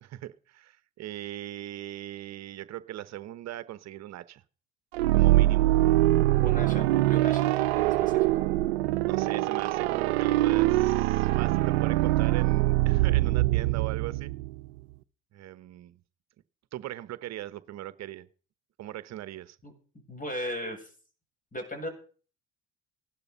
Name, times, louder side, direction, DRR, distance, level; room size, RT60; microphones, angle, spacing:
voice 1, 0.0-4.4 5.1-5.7 9.1-14.3 15.3-16.0 16.7-18.3 18.8-19.6, right 14 dB, 60° right, 0.9 m, -40 dB
sound 1, 4.9-14.7, right 17 dB, 90° right, 0.6 m, -23 dB
voice 2, 6.4-8.3 19.6-19.7 20.1-20.9 21.5-21.9, left 1 dB, 25° left, 7.9 m, -37 dB
16.5 x 12.0 x 5.6 m
hypercardioid pair, 65°, 30 cm